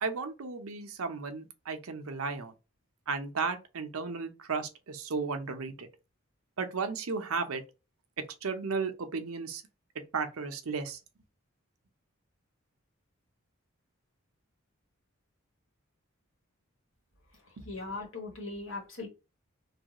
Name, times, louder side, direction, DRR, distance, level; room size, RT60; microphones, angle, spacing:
voice 1, 0.0-2.5 3.1-5.9 6.6-7.6 8.4-9.6 10.1-11.0 17.6-17.7, right 4 dB, 80° right, 0.7 m, -34 dB
voice 2, 17.6-19.1, left 3 dB, 65° left, 1.4 m, -39 dB
3.4 x 2.3 x 2.9 m
head